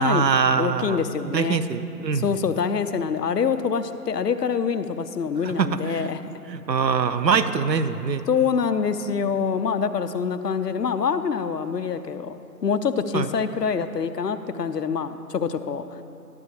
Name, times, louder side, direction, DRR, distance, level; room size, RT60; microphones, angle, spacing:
voice 1, 0.0-2.4 5.4-6.1 6.5-8.2 13.1-13.3, right 6 dB, 80° right, 11 dB, 0.6 m, -23 dB
voice 2, 0.6-1.6 2.1-6.2 8.3-16.0, left 6 dB, 70° left, 11 dB, 0.6 m, -25 dB
11.5 x 9.6 x 2.9 m, 2.7 s
figure-of-eight pair, 160°, 50 cm